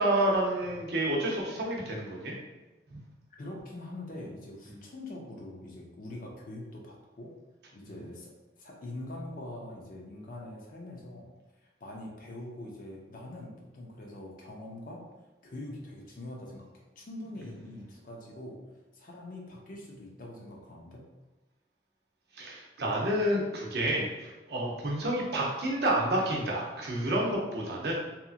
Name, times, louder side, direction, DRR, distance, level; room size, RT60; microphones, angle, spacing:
voice 1, 0.0-2.3 2.9-3.0 7.9-8.0 22.4-27.9, right 1 dB, 60° right, -3 dB, 0.6 m, -29 dB
voice 2, 3.3-7.3 7.7-11.3 11.6-15.0 15.4-18.6 18.9-21.0, left 1 dB, 45° left, -1 dB, 0.5 m, -43 dB
2.8 x 2.5 x 2.4 m, 1.1 s
head